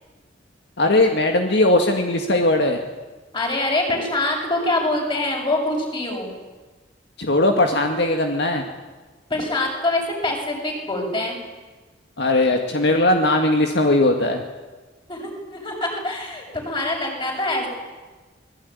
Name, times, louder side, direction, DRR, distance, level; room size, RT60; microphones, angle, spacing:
voice 1, 0.8-2.8 7.2-8.6 12.2-14.4, left 2 dB, 65° left, 3 dB, 2.2 m, -19 dB
voice 2, 3.3-6.3 9.3-11.4 15.1-17.7, left 2 dB, 30° left, 1 dB, 7.4 m, -24 dB
25.5 x 21.5 x 9.8 m, 1.3 s
head